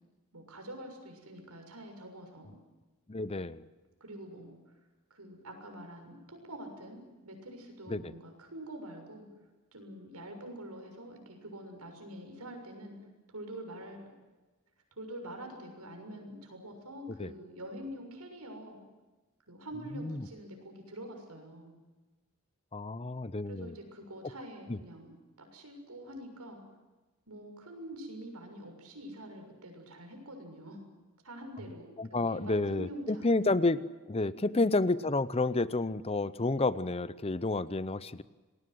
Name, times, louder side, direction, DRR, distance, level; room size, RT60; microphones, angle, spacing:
voice 1, 0.3-2.5 4.0-4.8 5.1-9.3 9.7-13.0 13.3-14.1 15.0-18.8 19.5-21.7 23.5-25.1 25.5-26.6 27.3-30.8 31.2-33.8 34.4-34.7, right 1 dB, 90° right, 4 dB, 6.8 m, -46 dB
voice 2, 3.1-3.6 7.9-8.1 17.2-17.3 19.9-20.3 22.7-23.7 24.7-24.8 32.0-33.8 34.1-38.2, left 2 dB, 25° left, 16 dB, 0.7 m, -30 dB
27.5 x 20.5 x 7.9 m, 1.2 s
head